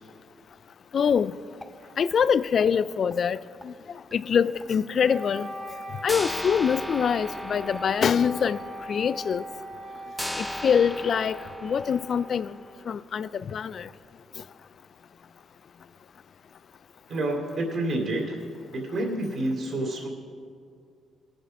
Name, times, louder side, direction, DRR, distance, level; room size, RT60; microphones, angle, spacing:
voice 1, 0.9-1.3 2.0-3.4 3.6-3.7 4.1-5.5 6.0-8.6 8.9-9.4 10.4-11.4 11.6-12.5 12.9-13.9, left 7 dB, 55° left, 0.3 m, -24 dB
sound 1, 1.1-1.2 1.6-1.7 2.1-2.3 2.6-2.7 3.1-3.2 3.6-3.7 4.1-4.2 4.6-4.7 5.1-5.2 5.6-5.7 6.1-12.8, left 1 dB, 10° left, 0.8 m, -38 dB
Wind instrument woodwind instrument, 5.0-13.1, equal, 35° right, 1.8 m, -40 dB
voice 2, 17.1-18.4 18.7-20.1, right 1 dB, 55° right, 2.8 m, -28 dB
18.5 x 6.9 x 5.2 m
cardioid pair, 90°, 0 cm